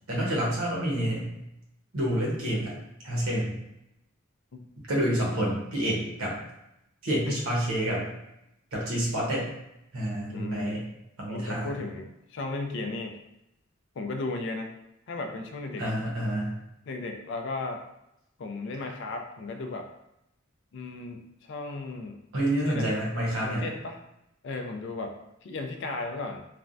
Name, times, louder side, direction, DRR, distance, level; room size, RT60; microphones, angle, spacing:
voice 1, 0.1-1.3 1.9-2.8 3.0-3.6 4.8-6.3 7.0-8.1 8.7-9.5 9.9-10.8 11.2-11.7 15.8-16.5 22.3-23.6, right 1 dB, 85° right, -4 dB, 1.0 m, -28 dB
voice 2, 10.3-10.8 11.3-13.2 14.0-14.7 15.1-15.9 16.9-17.8 18.4-19.9 20.7-22.2 22.6-23.0 23.4-24.0 24.4-26.5, left 3 dB, 60° left, 4 dB, 0.4 m, -35 dB
3.2 x 2.1 x 2.5 m, 0.84 s
head